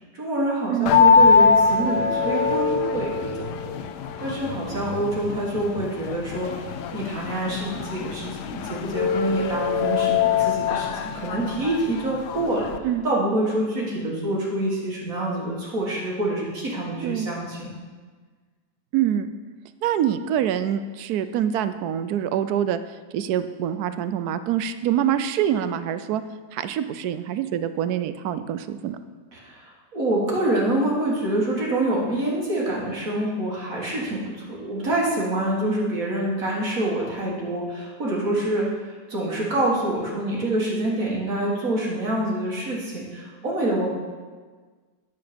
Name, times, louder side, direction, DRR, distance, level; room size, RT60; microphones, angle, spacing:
voice 1, 0.1-3.8 4.2-17.7 29.3-43.9, right 1 dB, 60° right, -4 dB, 2.2 m, -26 dB
sound 1, 0.9-12.8, left 5 dB, 85° left, 1.2 m, -22 dB
voice 2, 18.9-19.3 19.8-22.8 23.1-26.2 26.5-29.0, right 10 dB, 75° right, 11 dB, 1.1 m, -25 dB
9.6 x 8.0 x 5.2 m, 1.4 s
omnidirectional pair, 1.7 m